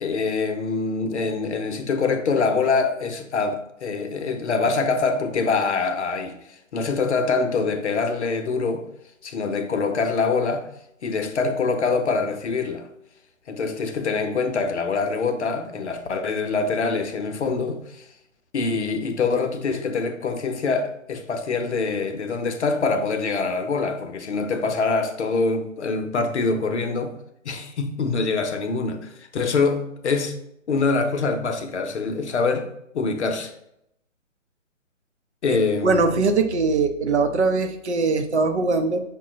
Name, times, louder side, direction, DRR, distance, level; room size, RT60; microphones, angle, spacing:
voice 1, 0.0-8.8 9.2-10.7 11.0-12.9 13.5-18.1 18.5-27.2 27.4-30.4 30.7-32.7 32.9-33.5 35.4-36.2, left 4 dB, 60° left, 0.7 m, -24 dB
voice 2, 35.8-39.0, right 3 dB, 60° right, 0.6 m, -21 dB
5.5 x 2.2 x 3.7 m
figure-of-eight pair, 145°, 39 cm